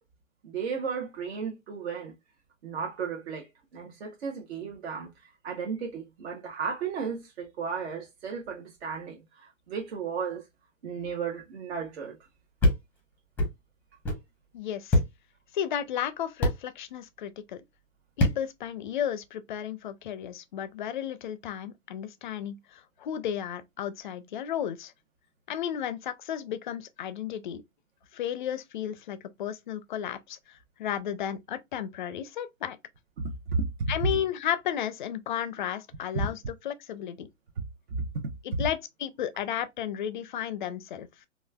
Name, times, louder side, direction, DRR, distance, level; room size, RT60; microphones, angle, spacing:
voice 1, 0.4-2.1 2.6-3.5 3.7-5.1 5.4-10.4 10.8-12.1 33.2-34.1 36.1-36.3 38.5-38.6, right 5 dB, 55° right, 0.9 m, -33 dB
sound 1, 12.6-12.8 13.4-13.5 14.0-14.2 14.9-15.1 16.4-16.6 18.2-18.4, left 1 dB, 5° left, 0.7 m, -22 dB
voice 2, 14.5-15.0 15.5-17.6 18.2-24.9 25.5-27.6 28.1-32.8 33.9-37.3 38.4-41.1, left 10 dB, 40° left, 0.5 m, -33 dB
4.0 x 2.4 x 2.2 m
figure-of-eight pair, 125°, 38 cm